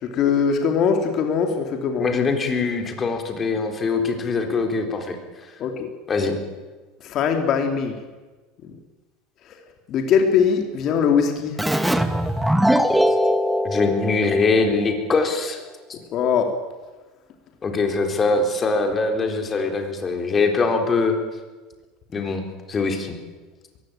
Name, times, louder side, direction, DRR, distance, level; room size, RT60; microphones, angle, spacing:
voice 1, 0.0-2.1 5.6-5.9 7.0-7.9 8.6-8.8 9.4-9.6 9.9-11.6 11.9-12.1 16.1-16.6, left 6 dB, 45° left, 4 dB, 2.7 m, -21 dB
voice 2, 2.0-5.2 6.1-6.3 13.6-15.6 15.9-16.0 17.6-21.1 22.1-23.2, left 4 dB, 25° left, 4 dB, 3.9 m, -22 dB
Keyboard (musical), 11.6-15.0, equal, 5° right, 1.5 m, -21 dB
22.0 x 16.0 x 9.0 m, 1.3 s
supercardioid pair, 125°, 0 cm